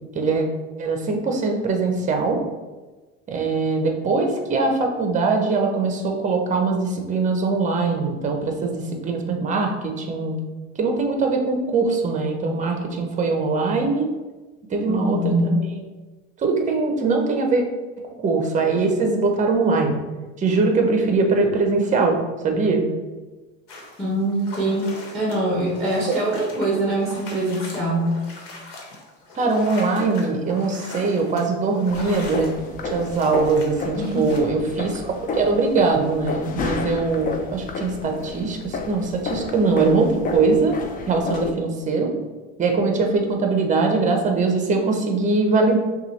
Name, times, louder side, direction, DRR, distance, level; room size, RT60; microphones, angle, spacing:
voice 1, 0.1-0.5 0.8-2.4 3.3-10.3 10.8-14.1 14.7-15.6 16.4-17.6 18.2-20.0 20.4-22.2 22.4-22.8 29.3-32.5 32.8-40.8 41.1-42.1 42.6-45.8, right 3 dB, 25° right, 3 dB, 0.7 m, -22 dB
voice 2, 14.9-15.5 24.0-28.1 34.0-34.3, right 1 dB, ahead, -5 dB, 0.9 m, -23 dB
sound 1, 23.7-34.4, left 2 dB, 85° left, 1.2 m, -40 dB
sound 2, 31.9-41.5, left 3 dB, 30° left, 0.4 m, -31 dB
5.6 x 2.4 x 3.1 m, 1.2 s
supercardioid pair, 130°, 31 cm